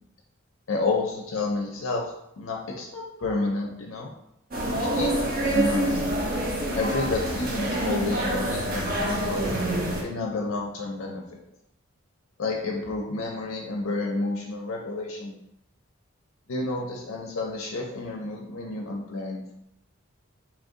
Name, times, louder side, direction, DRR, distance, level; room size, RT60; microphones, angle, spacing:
voice 1, 0.7-4.1 4.7-6.1 6.8-9.6 10.0-11.4 12.4-15.4 16.5-19.5, left 3 dB, 75° left, 0 dB, 0.5 m, -30 dB
sound 1, 4.5-10.0, right 1 dB, 45° right, 0.7 m, -26 dB
3.1 x 2.6 x 3.8 m, 0.78 s
head